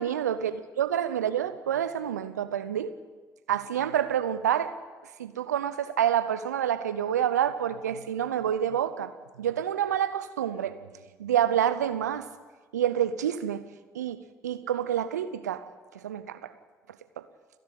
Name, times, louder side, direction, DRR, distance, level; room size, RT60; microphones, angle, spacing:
voice 1, 0.0-2.9 3.5-4.7 5.2-9.1 9.4-10.9 11.2-12.3 12.7-13.7 13.9-15.6 15.9-16.5 17.2-17.3, right 10 dB, 85° right, 12 dB, 0.6 m, -28 dB
29.0 x 11.0 x 8.3 m, 1.3 s
figure-of-eight pair, 45°, 9 cm